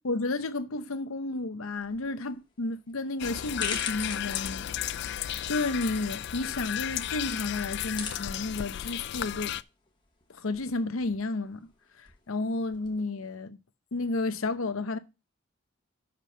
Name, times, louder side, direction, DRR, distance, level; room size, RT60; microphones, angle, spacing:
voice 1, 0.0-4.7 4.9-5.1 5.5-9.6 10.4-11.7 12.0-13.6 13.9-15.0, left 2 dB, 75° left, 0.8 m, -32 dB
sound 1, 1.8-13.0, left 5 dB, 20° left, 1.2 m, -45 dB
sound 2, 3.2-9.6, left 11 dB, 50° left, 0.3 m, -34 dB
6.0 x 5.1 x 6.5 m
head